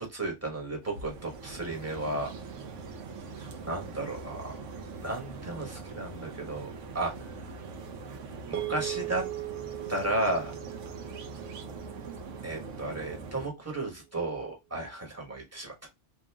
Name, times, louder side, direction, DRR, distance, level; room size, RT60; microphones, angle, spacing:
voice 1, 0.0-2.3 3.4-4.6 5.0-6.7 6.9-7.1 8.5-9.2 9.9-10.5 12.4-15.7, right 2 dB, 15° right, 0 dB, 1.2 m, -33 dB
sound 1, 0.8-13.5, right 4 dB, 85° right, 1.1 m, -42 dB
sound 2, 8.5-13.0, right 15 dB, 55° right, 0.8 m, -39 dB
3.1 x 2.6 x 3.4 m, 0.20 s
omnidirectional pair, 1.2 m